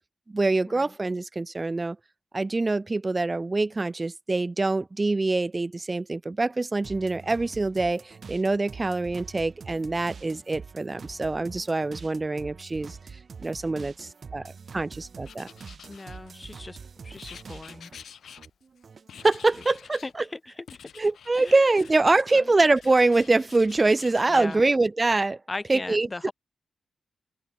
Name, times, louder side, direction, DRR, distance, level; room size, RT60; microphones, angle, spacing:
voice 1, 0.3-2.0 2.3-13.0 13.4-15.5 19.2-20.0 21.0-25.4 25.7-26.1, right 3 dB, 20° right, 2.7 m, -24 dB
sound 1, 6.8-18.0 18.4-19.8, right 5 dB, 40° right, 7.6 m, -45 dB
Writing, 15.2-16.6 17.2-18.8 19.1-20.2 20.7-22.4 22.7-24.6, left 8 dB, 70° left, 6.9 m, -49 dB
voice 2, 15.9-16.8 17.0-17.9 20.0-20.9 21.4-21.7 22.3-22.5 24.3-24.6 25.5-26.3, left 2 dB, 20° left, 4.8 m, -38 dB
open air
wide cardioid pair, 165°, 0 cm